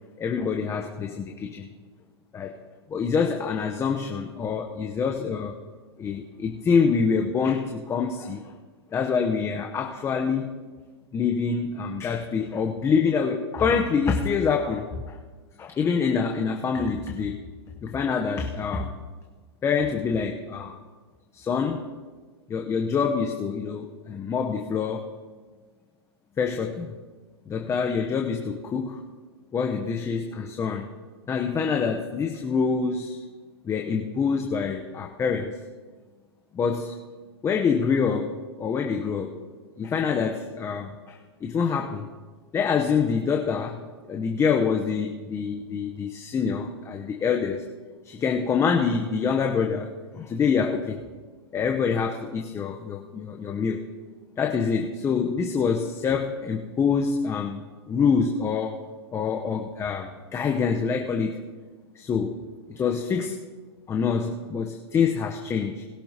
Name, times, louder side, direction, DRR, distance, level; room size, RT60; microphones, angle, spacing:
voice 1, 0.2-1.7 2.3-2.5 2.9-5.5 6.0-8.5 8.9-10.5 11.1-15.2 15.6-17.4 17.8-18.9 19.6-20.8 21.3-21.9 22.5-25.1 26.4-26.9 27.5-29.0 29.5-30.9 31.3-33.2 33.6-35.6 36.5-37.0 37.4-39.3 39.8-42.1 42.5-43.8 44.1-47.6 48.0-51.0 51.5-53.8 54.4-58.8 59.1-61.4 61.9-62.4 62.7-63.4 63.9-65.8, left 6 dB, 20° left, 3 dB, 0.9 m, -26 dB
21.0 x 11.5 x 2.9 m, 1.4 s
hypercardioid pair, 115°, 14 cm